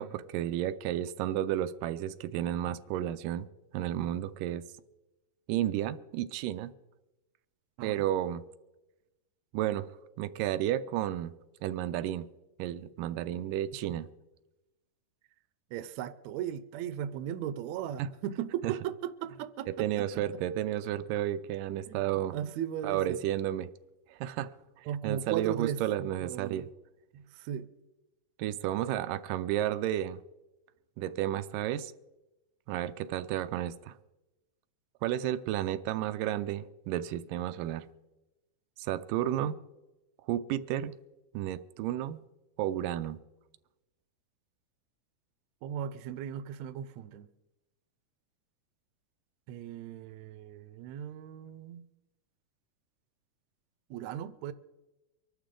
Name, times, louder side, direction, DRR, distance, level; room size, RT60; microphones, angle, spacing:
voice 1, 0.0-3.5 3.7-4.6 5.5-6.7 7.8-8.4 9.5-9.9 10.2-11.3 11.6-12.3 12.6-14.1 18.0-18.1 18.6-18.7 19.7-22.4 22.8-23.7 24.1-24.5 24.8-26.7 28.4-30.2 31.0-31.9 32.7-33.9 35.0-37.9 38.8-39.6 40.3-41.0 41.3-42.2 42.6-43.2, right 12 dB, 90° right, 12 dB, 2.3 m, -32 dB
voice 2, 15.7-19.7 20.0-20.2 21.9-23.2 24.9-26.7 27.1-27.7 39.4-39.5 45.6-47.3 49.5-51.8 53.9-54.5, right 10 dB, 75° right, 13 dB, 1.8 m, -37 dB
24.0 x 12.0 x 3.8 m, 1.0 s
omnidirectional pair, 3.8 m